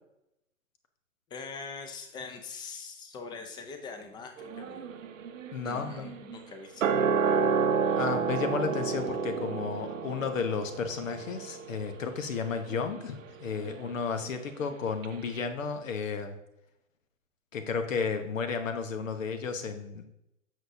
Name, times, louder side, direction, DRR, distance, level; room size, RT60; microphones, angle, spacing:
voice 1, 1.3-4.8 5.6-7.0, left 4 dB, 10° left, 5 dB, 0.6 m, -43 dB
sound 1, 4.4-14.8 15.0-15.1, right 6 dB, 65° right, 0.8 m, -32 dB
voice 2, 5.5-6.1 8.0-16.4 17.5-20.0, left 5 dB, 70° left, 8 dB, 1.2 m, -33 dB
7.9 x 6.3 x 2.7 m, 0.86 s
figure-of-eight pair, 120°, 41 cm